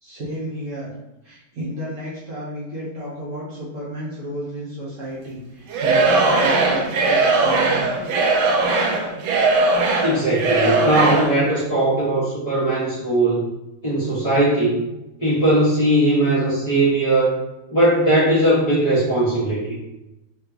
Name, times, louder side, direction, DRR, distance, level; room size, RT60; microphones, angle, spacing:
voice 1, 0.0-0.9 1.2-7.9, equal, 55° right, -7 dB, 0.9 m, -32 dB
Singing / Crowd, 5.7-11.4, right 3 dB, 80° right, 1.3 m, -19 dB
voice 2, 10.0-13.5 13.8-14.8 15.2-17.4 17.7-19.8, right 1 dB, 25° left, -10 dB, 0.8 m, -19 dB
3.3 x 2.8 x 2.3 m, 0.93 s
omnidirectional pair, 2.2 m